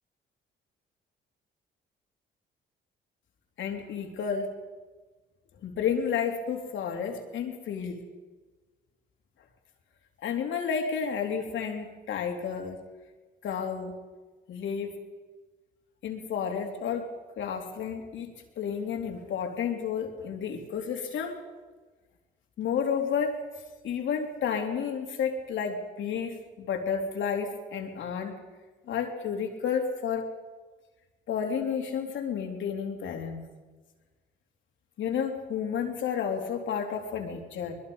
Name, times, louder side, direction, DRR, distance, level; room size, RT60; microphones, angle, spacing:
voice 1, 3.6-4.5 5.6-8.0 10.2-12.8 13.4-14.0 14.5-15.0 16.0-17.1 17.4-18.3 18.6-21.4 22.6-23.4 23.8-28.4 28.9-30.3 31.3-33.4 35.0-37.8, left 7 dB, 75° left, 3 dB, 3.3 m, -31 dB
23.5 x 21.5 x 5.5 m, 1.3 s
cardioid pair, 90°, 20 cm